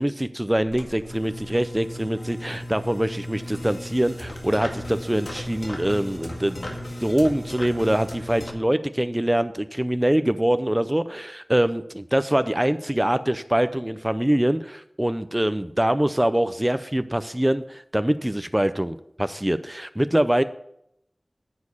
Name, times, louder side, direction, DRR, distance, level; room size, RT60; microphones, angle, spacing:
voice 1, 0.0-6.7 7.0-20.4, right 1 dB, 20° right, 11 dB, 0.5 m, -24 dB
sound 1, 0.6-8.5, left 1 dB, 80° left, 1.9 m, -36 dB
9.6 x 6.5 x 5.5 m, 0.76 s
wide cardioid pair, 40°, 0 cm